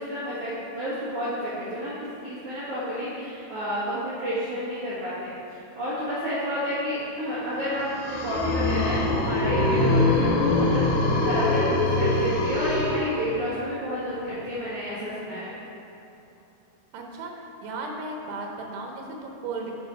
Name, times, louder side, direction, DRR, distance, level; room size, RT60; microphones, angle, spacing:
voice 1, 0.0-1.9 2.2-5.4 5.7-15.5, equal, 55° right, -11 dB, 1.7 m, -30 dB
sound 1, 7.7-13.6, left 2 dB, 75° left, 2.4 m, -23 dB
voice 2, 16.9-17.3 17.6-19.7, right 3 dB, 85° right, 0 dB, 3.0 m, -35 dB
7.9 x 4.4 x 5.3 m, 2.9 s
omnidirectional pair, 4.7 m